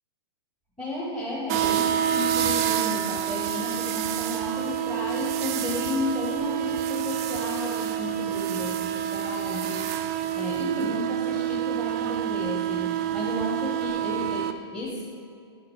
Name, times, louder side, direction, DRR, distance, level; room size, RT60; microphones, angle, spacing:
voice 1, 0.8-15.0, left 1 dB, 5° left, -7 dB, 1.4 m, -33 dB
sound 1, 1.5-14.5, right 10 dB, 35° right, 0.4 m, -28 dB
10.0 x 5.7 x 4.8 m, 2.4 s
figure-of-eight pair, 105°, 14 cm